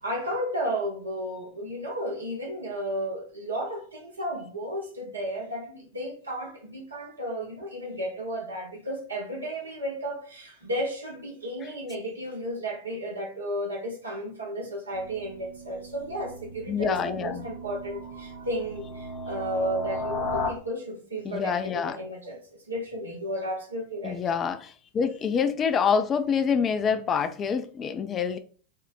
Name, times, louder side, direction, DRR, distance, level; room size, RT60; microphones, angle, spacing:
voice 1, 0.0-24.2, equal, 75° right, 0.8 m, -33 dB
sound 1, 14.9-20.5, left 2 dB, 50° left, 0.9 m, -36 dB
voice 2, 16.7-17.5 21.2-22.0 24.0-28.4, left 6 dB, 25° left, 0.4 m, -26 dB
3.6 x 2.1 x 3.8 m
figure-of-eight pair, 90°, 0 cm